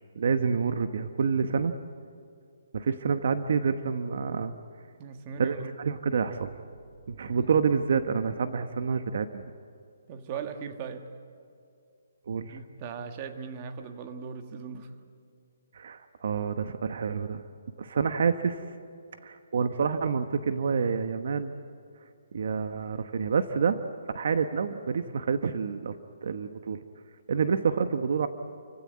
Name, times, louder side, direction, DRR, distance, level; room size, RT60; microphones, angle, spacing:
voice 1, 0.1-1.7 2.7-4.5 5.4-6.6 7.1-9.4 12.3-12.6 15.7-17.4 17.8-18.6 19.2-21.5 22.3-23.8 24.1-26.8 27.3-28.3, right 6 dB, 55° right, 10 dB, 1.1 m, -28 dB
voice 2, 5.0-5.7 7.2-7.5 10.1-11.2 12.5-14.9 27.3-27.5, right 6 dB, 25° right, 7 dB, 1.6 m, -39 dB
29.0 x 16.0 x 9.5 m, 2.5 s
hypercardioid pair, 170°, 0 cm